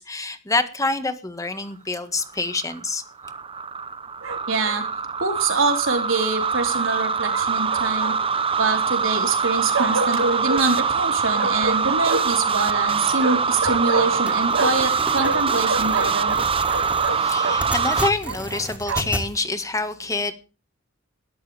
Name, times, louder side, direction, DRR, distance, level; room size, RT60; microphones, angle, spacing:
voice 1, 0.0-3.0 17.1-20.3, left 3 dB, 15° left, 9 dB, 1.7 m, -26 dB
sound 1, 2.2-18.1, right 5 dB, 30° right, 0.8 m, -23 dB
Bark, 4.2-4.9 7.3-8.4 9.7-10.6 11.3-12.4 13.2-14.9 15.2-17.6 18.2-19.2, right 3 dB, 90° right, 1.5 m, -28 dB
voice 2, 4.5-4.8 5.2-8.1 8.6-16.4, right 3 dB, 75° right, 4 dB, 4.2 m, -25 dB
sound 2, 14.3-19.3, equal, 5° right, 2.8 m, -33 dB
21.0 x 13.0 x 3.5 m, 0.34 s
head